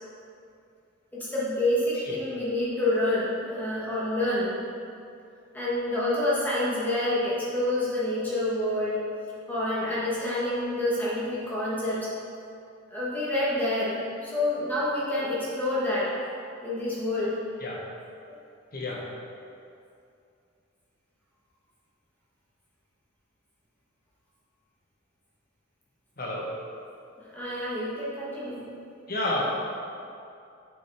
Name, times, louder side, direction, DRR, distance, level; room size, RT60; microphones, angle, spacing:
voice 1, 1.1-4.5 5.5-9.0 9.5-12.1 12.9-16.1 16.6-17.4 18.3-18.4 27.3-28.6, left 1 dB, 10° left, -8 dB, 1.2 m, -28 dB
voice 2, 29.1-29.4, left 2 dB, 45° left, -3 dB, 1.0 m, -30 dB
7.1 x 5.4 x 3.4 m, 2.5 s
head